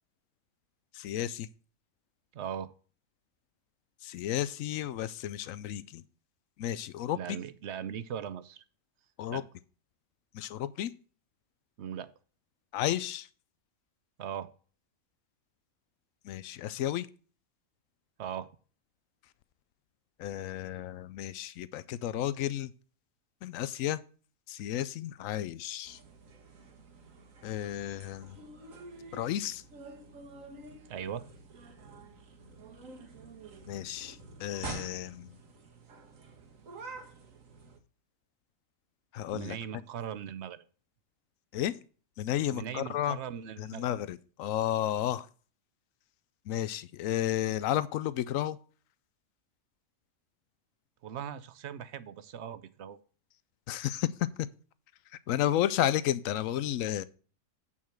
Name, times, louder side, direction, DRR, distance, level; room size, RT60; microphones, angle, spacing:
voice 1, 0.9-1.5 4.0-6.0 6.6-7.2 9.2-9.4 10.3-10.9 12.7-13.3 16.2-17.1 20.2-22.7 23.4-24.0 24.5-26.0 27.4-28.4 29.1-29.6 33.7-35.3 39.1-39.6 41.5-41.7 42.2-43.2 43.6-45.3 46.5-48.6 53.7-54.1 54.4-54.5 55.3-57.0, left 12 dB, 85° left, 16 dB, 1.0 m, -32 dB
voice 2, 2.3-2.7 7.1-8.6 9.3-9.4 11.8-12.1 14.2-14.5 18.2-18.5 30.9-31.3 39.3-40.6 42.5-43.9 51.0-53.0, right 9 dB, 65° right, 15 dB, 0.9 m, -39 dB
sound 1, 25.8-37.8, right 3 dB, 80° right, 1.7 m, -48 dB
8.7 x 5.6 x 4.5 m, 0.39 s
omnidirectional pair, 1.4 m